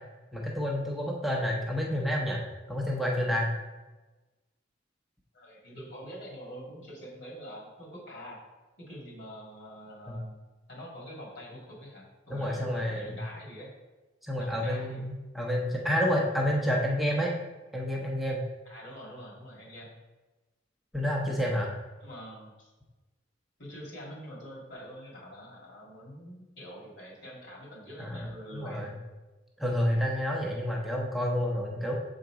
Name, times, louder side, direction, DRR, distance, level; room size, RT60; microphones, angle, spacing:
voice 1, 0.3-2.4 2.7-3.5 10.1-10.2 12.3-13.2 14.2-17.3 17.7-18.4 20.9-21.7 28.0-28.3 28.5-28.9 29.6-31.9, equal, ahead, -3 dB, 0.7 m, -29 dB
voice 2, 5.3-8.4 8.8-10.4 10.7-13.7 14.4-15.0 18.7-19.9 22.0-22.7 23.6-28.9, equal, 65° left, -2 dB, 2.2 m, -45 dB
6.5 x 3.9 x 4.7 m, 1.2 s
head